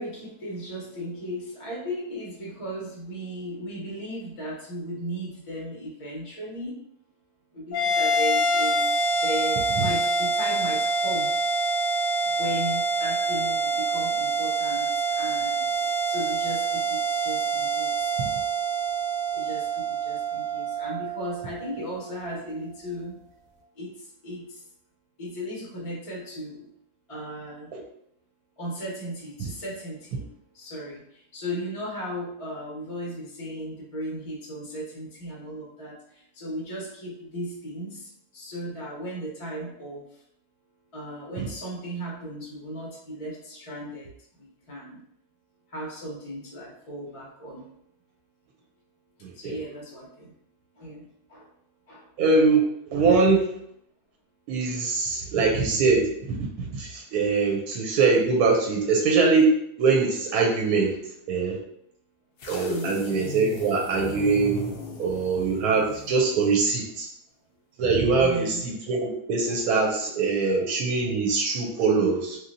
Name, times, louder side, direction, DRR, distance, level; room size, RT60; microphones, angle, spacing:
voice 1, 0.0-6.8 7.5-8.9 9.2-11.3 12.2-14.9 15.2-15.7 16.0-18.1 19.3-23.2 23.7-24.6 25.2-26.7 27.1-27.7 28.6-30.3 30.5-40.2 40.9-45.0 45.7-47.7 49.3-50.3 50.7-51.5 51.9-52.1 62.7-63.1 68.2-68.7, equal, 30° left, -5 dB, 0.7 m, -36 dB
sound 1, 7.7-22.3, right 2 dB, 70° left, 0.9 m, -26 dB
voice 2, 49.2-49.6 52.2-52.6 52.9-53.4 54.5-60.9 61.3-61.6 62.5-64.7 65.0-67.1 67.8-72.4, right 4 dB, 85° right, -1 dB, 1.1 m, -23 dB
sound 2, 62.4-66.7, left 3 dB, 90° left, 0.5 m, -37 dB
3.0 x 2.5 x 2.6 m, 0.71 s
omnidirectional pair, 1.6 m